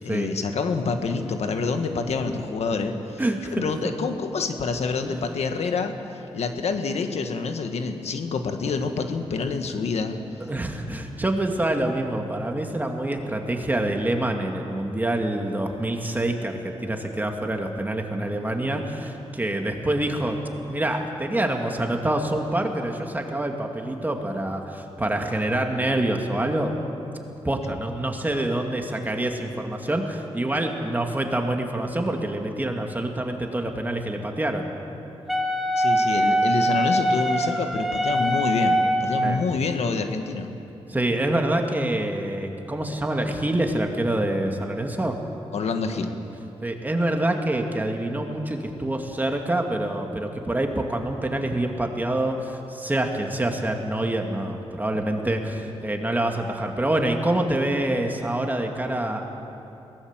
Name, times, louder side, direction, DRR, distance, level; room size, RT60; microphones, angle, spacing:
voice 1, 0.0-3.2 3.5-10.2 35.8-40.6 45.5-46.1, left 4 dB, 85° left, 6 dB, 1.5 m, -27 dB
voice 2, 3.2-3.6 5.0-5.2 10.5-20.4 20.7-26.8 27.4-34.7 39.2-39.4 40.9-45.2 46.6-59.2, right 1 dB, 15° right, 3 dB, 2.2 m, -26 dB
Wind instrument woodwind instrument, 35.3-39.5, equal, ahead, 1.8 m, -23 dB
22.0 x 18.0 x 7.4 m, 2.9 s
wide cardioid pair, 95°, 11 cm